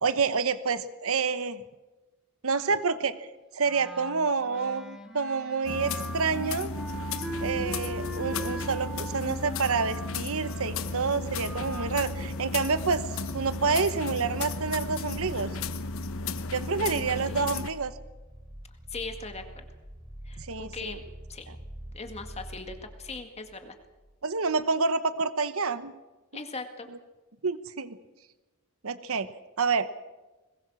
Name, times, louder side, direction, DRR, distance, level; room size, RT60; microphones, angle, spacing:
voice 1, 0.0-1.6 2.4-3.3 3.5-6.7 7.4-13.0 13.3-15.6 16.5-17.9 20.4-21.0 24.2-25.9 27.4-28.0 28.8-29.3 29.6-29.9, right 4 dB, 70° right, 13 dB, 1.0 m, -28 dB
Wind instrument woodwind instrument, 3.6-11.9, right 1 dB, 5° right, 2.1 m, -40 dB
sound 1, 5.6-17.7, left 3 dB, 65° left, 1.1 m, -34 dB
sound 2, 10.4-24.2 24.5-24.6, right 1 dB, 25° right, 3.0 m, -47 dB
voice 2, 18.9-19.7 20.2-21.0 21.3-21.5 21.9-23.7 26.3-26.9, left 3 dB, 30° left, 6 dB, 2.0 m, -39 dB
22.0 x 20.0 x 6.3 m, 1.1 s
head